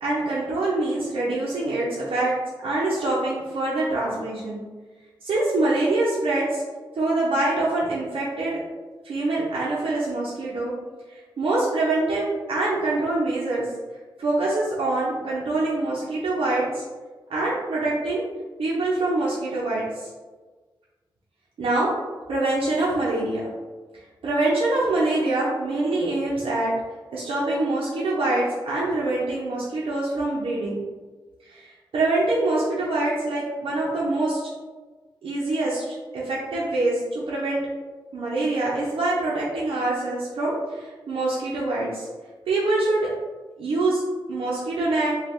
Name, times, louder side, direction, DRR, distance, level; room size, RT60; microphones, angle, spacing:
voice 1, 0.0-2.3 2.6-4.6 5.2-6.6 6.9-8.6 9.0-10.7 11.1-13.6 14.2-16.8 17.3-18.2 18.6-20.1 21.6-21.9 22.3-23.4 24.2-26.7 27.1-30.8 31.5-34.5 35.2-37.6 38.1-42.1 42.5-43.0 43.6-44.0 44.3-45.1, right 2 dB, 90° right, -7 dB, 0.5 m, -25 dB
3.2 x 2.2 x 2.8 m, 1.3 s
cardioid pair, 55°, 9 cm